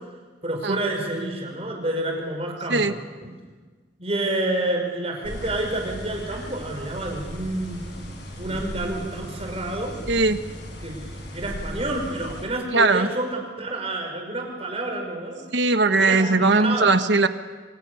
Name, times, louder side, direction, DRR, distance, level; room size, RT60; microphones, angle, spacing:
voice 1, 0.4-3.3 4.0-7.8 8.4-10.0 10.8-15.4 16.0-16.9, right 1 dB, 35° right, 2 dB, 5.7 m, -29 dB
sound 1, 5.2-12.4, equal, 65° left, 6.5 m, -37 dB
voice 2, 10.1-10.4 12.7-13.1 15.5-17.3, right 3 dB, 70° right, 10 dB, 1.3 m, -19 dB
28.0 x 26.0 x 7.0 m, 1.4 s
head